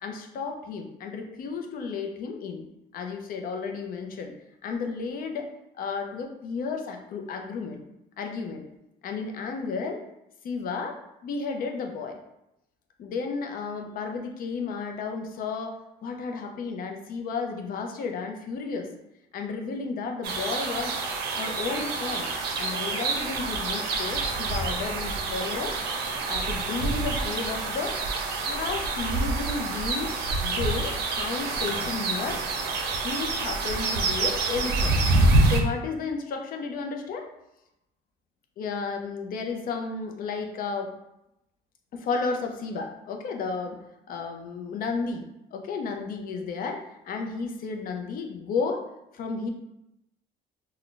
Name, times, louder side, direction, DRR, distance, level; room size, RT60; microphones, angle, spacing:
voice 1, 0.0-2.7 2.9-4.3 4.6-5.5 5.8-7.8 8.2-8.6 9.0-10.0 10.4-12.2 13.0-15.8 16.0-18.9 19.3-21.0 21.4-22.3 22.6-25.8 26.3-28.0 28.3-30.1 30.4-32.4 33.0-35.0 35.4-37.3 38.6-40.9 41.9-43.8 44.1-48.8 49.1-49.5, left 4 dB, 60° left, 4 dB, 0.5 m, -32 dB
sound 1, 20.2-35.6, right 3 dB, 70° right, 0.5 m, -27 dB
3.7 x 2.2 x 2.4 m, 0.87 s
cardioid pair, 110°, 17 cm